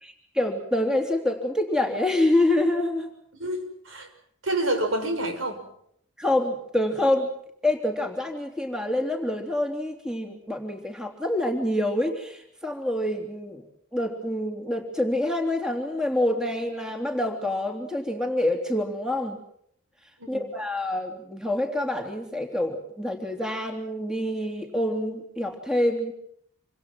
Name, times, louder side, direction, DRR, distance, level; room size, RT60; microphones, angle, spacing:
voice 1, 0.0-3.1 6.2-7.3 7.6-13.6 13.9-19.4 20.3-26.1, left 1 dB, 5° right, 3 dB, 3.3 m, -26 dB
voice 2, 3.3-4.1 4.4-5.6 20.2-20.5, right 1 dB, 70° right, 5 dB, 6.2 m, -28 dB
28.0 x 25.5 x 6.1 m, 0.70 s
head